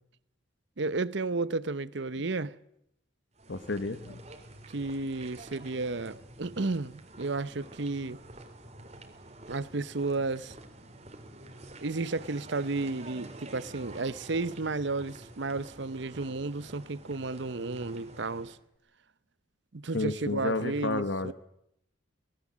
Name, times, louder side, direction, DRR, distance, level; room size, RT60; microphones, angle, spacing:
voice 1, 0.8-2.5 4.7-8.2 9.5-10.5 11.8-18.6 19.7-21.3, right 3 dB, 65° right, 0.8 m, -33 dB
sound 1, 3.4-18.6, right 1 dB, 35° right, 2.7 m, -48 dB
voice 2, 3.5-4.2 19.9-21.3, left 2 dB, 65° left, 1.2 m, -31 dB
24.0 x 19.5 x 7.4 m
head